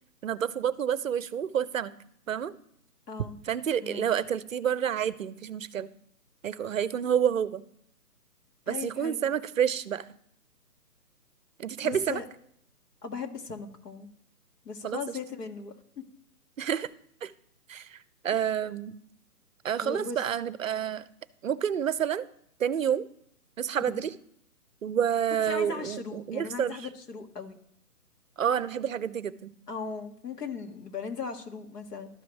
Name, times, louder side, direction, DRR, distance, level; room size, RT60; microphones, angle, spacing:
voice 1, 0.2-1.9 2.3-2.5 3.5-5.9 6.4-7.6 8.7-10.1 11.6-12.2 14.8-15.0 16.6-16.9 17.2-17.3 17.7-18.0 18.2-19.0 19.6-21.0 21.4-22.3 22.6-23.0 23.6-24.1 24.8-26.8 28.4-29.5, right 8 dB, 55° right, 17 dB, 0.5 m, -29 dB
voice 2, 3.1-3.4 3.8-4.0 8.7-9.2 11.8-12.2 13.0-14.1 14.6-16.1 19.8-20.2 25.5-27.6 29.7-32.1, left 5 dB, 80° left, 5 dB, 1.7 m, -38 dB
12.5 x 5.0 x 3.2 m, 0.70 s
hypercardioid pair, 155°, 47 cm